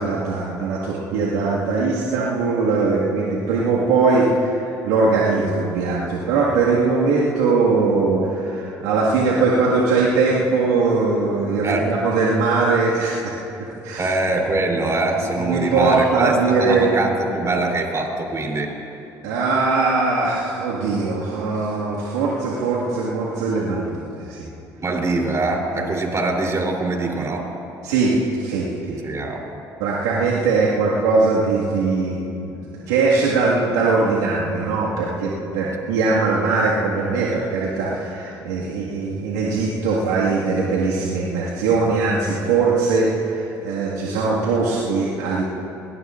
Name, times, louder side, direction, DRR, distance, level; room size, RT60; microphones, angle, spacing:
voice 1, 0.0-13.3 13.6-14.1 15.4-16.9 19.2-24.5 25.8-25.9 27.8-29.0 29.8-45.4, right 4 dB, 85° right, -6 dB, 1.8 m, -21 dB
voice 2, 14.0-18.7 24.8-27.5 29.0-29.4, right 2 dB, 35° right, 0 dB, 3.3 m, -23 dB
23.0 x 18.0 x 2.5 m, 2.8 s
hypercardioid pair, 65°, 9 cm